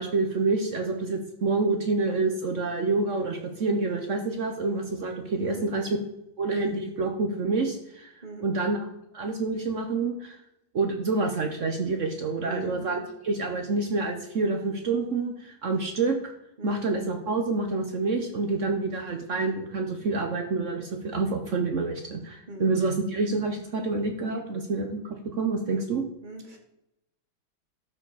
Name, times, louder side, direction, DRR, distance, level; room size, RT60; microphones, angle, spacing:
voice 1, 0.0-6.0 6.4-8.1 8.4-8.8 9.1-10.4 10.7-16.2 16.6-26.0, right 3 dB, 60° right, 4 dB, 0.8 m, -27 dB
voice 2, 12.4-13.0 16.6-16.8 22.5-22.7 25.7-25.8 26.2-26.6, equal, 25° right, 2 dB, 1.3 m, -40 dB
12.5 x 4.9 x 4.0 m, 0.86 s
omnidirectional pair, 2.3 m